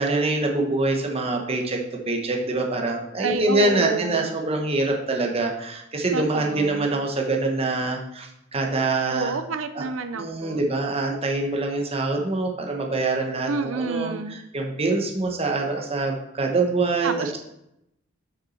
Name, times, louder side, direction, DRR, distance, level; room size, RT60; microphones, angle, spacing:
voice 1, 0.0-1.8 2.1-9.3 9.7-9.8 10.1-14.1 14.5-17.4, right 2 dB, 30° right, 1 dB, 1.1 m, -25 dB
voice 2, 3.2-4.3 6.1-6.9 9.1-10.7 13.5-14.4 17.0-17.4, right 4 dB, 80° right, 10 dB, 0.6 m, -29 dB
6.6 x 6.2 x 4.2 m, 0.82 s
head